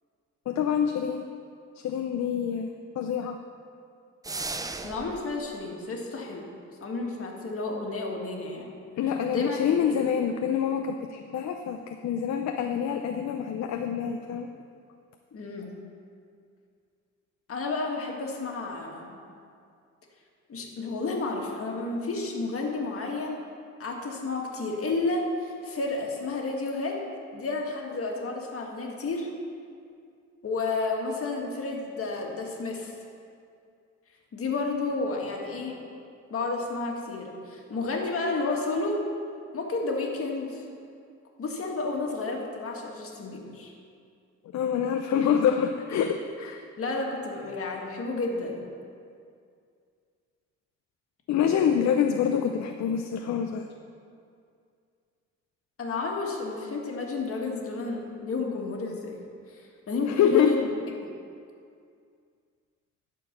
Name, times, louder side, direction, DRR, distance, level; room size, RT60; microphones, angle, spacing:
voice 1, 0.5-1.3 1.8-2.7 3.0-3.4 9.0-14.5 44.5-46.6 51.3-53.7 60.1-60.5, left 8 dB, 65° left, 5 dB, 0.6 m, -26 dB
sound 1, 4.2-5.2, right 3 dB, 10° right, 0.5 m, -35 dB
voice 2, 4.8-6.5 6.8-8.7 9.3-10.0 15.3-15.7 17.5-19.2 20.5-23.4 23.8-27.0 27.3-29.3 30.4-32.9 34.3-35.8 36.3-39.0 39.5-40.7 41.4-43.7 46.8-48.6 55.8-59.2 59.5-60.6 61.0-61.1, left 3 dB, 50° left, 0 dB, 1.8 m, -31 dB
12.5 x 4.7 x 6.7 m, 2.3 s
cardioid pair, 90°, 30 cm